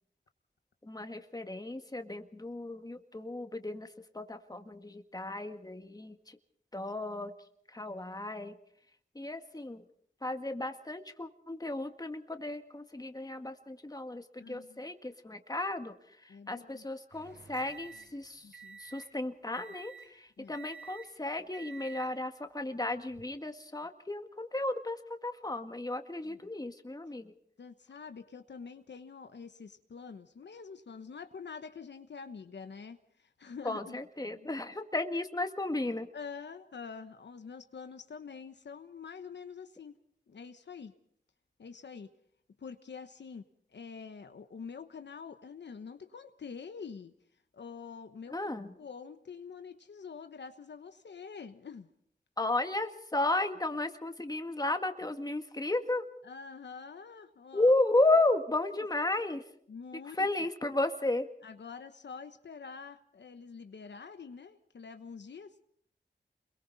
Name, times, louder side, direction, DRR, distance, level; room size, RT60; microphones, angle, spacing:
voice 1, 0.8-3.9 4.1-6.4 6.7-7.3 7.7-8.6 9.2-9.8 10.2-15.9 16.2-18.5 18.8-27.3 33.6-36.1 48.3-48.7 52.4-56.1 57.5-59.4 60.2-61.3, left 2 dB, 20° left, 6 dB, 1.8 m, -33 dB
voice 2, 14.4-14.9 16.3-16.8 18.4-18.8 20.4-20.5 26.2-26.4 27.6-34.0 34.3-34.5 36.1-40.0 40.3-40.9 41.6-42.1 42.6-43.5 43.7-47.1 47.5-48.4 48.8-51.9 56.2-57.7 59.7-60.2 61.4-65.5, left 5 dB, 75° left, 8 dB, 1.1 m, -46 dB
sound 1, 17.1-19.2 19.5-20.2 20.5-21.2 21.5-22.2 22.9-23.2, right 6 dB, 75° right, 6.9 m, -50 dB
28.5 x 22.5 x 4.1 m, 0.65 s
cardioid pair, 55°, 18 cm